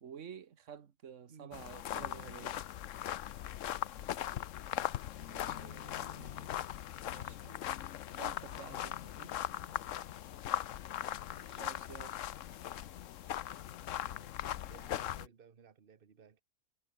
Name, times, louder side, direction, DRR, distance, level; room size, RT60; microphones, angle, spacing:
voice 1, 0.0-2.6 7.1-7.6 8.1-9.3 11.6-12.2, right 8 dB, 55° right, 1.5 m, -50 dB
voice 2, 1.3-1.6 5.2-6.8 7.3-7.4 9.7-10.0 11.2-11.8 14.1-16.4, right 6 dB, 35° right, 1.4 m, -59 dB
sound 1, 1.5-15.3, left 11 dB, 60° left, 0.9 m, -40 dB
sound 2, 4.6-9.9, right 3 dB, 85° right, 4.7 m, -75 dB
omnidirectional pair, 1.7 m